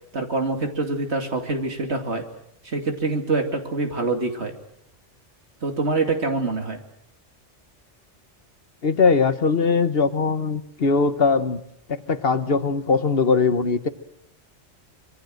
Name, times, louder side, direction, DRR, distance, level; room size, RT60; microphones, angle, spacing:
voice 1, 0.1-2.3 2.6-4.5 5.6-6.8, right 3 dB, 65° right, 4 dB, 2.9 m, -25 dB
voice 2, 8.8-11.6 11.9-13.9, left 4 dB, 55° left, 11 dB, 1.3 m, -21 dB
25.5 x 23.0 x 6.5 m, 0.75 s
omnidirectional pair, 1.2 m